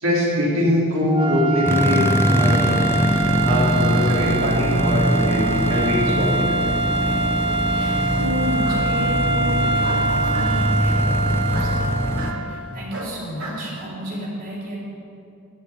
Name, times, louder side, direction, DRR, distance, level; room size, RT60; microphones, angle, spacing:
voice 1, 0.0-2.8 3.4-6.8, left 1 dB, 65° right, -6 dB, 3.6 m, -22 dB
sound 1, 1.1-12.6, right 3 dB, 25° right, 0.8 m, -24 dB
sound 2, 1.7-12.3, left 1 dB, 10° left, 0.5 m, -22 dB
voice 2, 7.7-14.8, equal, 40° right, -4 dB, 4.0 m, -31 dB
Bark, 8.6-8.8 9.8-10.5 11.5-11.7 12.2-12.4 12.9-13.6, right 2 dB, 80° right, 2.5 m, -34 dB
14.5 x 6.6 x 9.8 m, 2.6 s
head